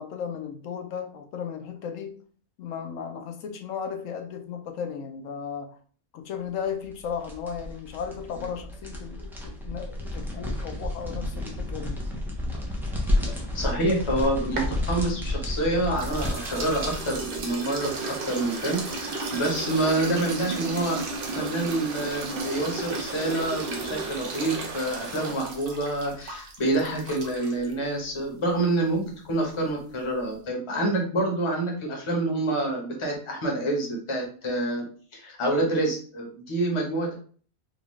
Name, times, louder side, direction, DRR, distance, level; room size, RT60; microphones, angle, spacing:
voice 1, 0.0-2.1 2.6-5.7 6.1-12.0, left 7 dB, 70° left, 6 dB, 1.0 m, -35 dB
sound 1, 6.8-17.5, left 1 dB, 5° right, 0.4 m, -31 dB
voice 2, 13.5-34.9 35.1-37.1, right 1 dB, 25° left, 0 dB, 0.9 m, -27 dB
sound 2, 14.0-15.6 16.0-27.7, right 3 dB, 50° right, 0.8 m, -34 dB
sound 3, 17.8-25.3, right 4 dB, 80° right, 1.1 m, -39 dB
3.9 x 2.4 x 3.1 m, 0.43 s
omnidirectional pair, 1.5 m